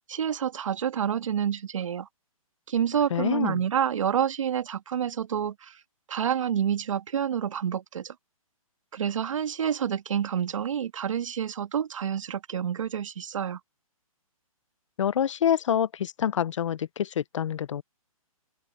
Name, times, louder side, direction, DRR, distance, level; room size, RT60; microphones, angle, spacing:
voice 1, 0.1-2.1 2.7-5.8 6.1-8.2 8.9-13.6, right 8 dB, 60° right, 1.7 m, -28 dB
voice 2, 3.1-3.6 15.0-17.8, left 9 dB, 55° left, 0.8 m, -26 dB
open air
hypercardioid pair, 160°, 19 cm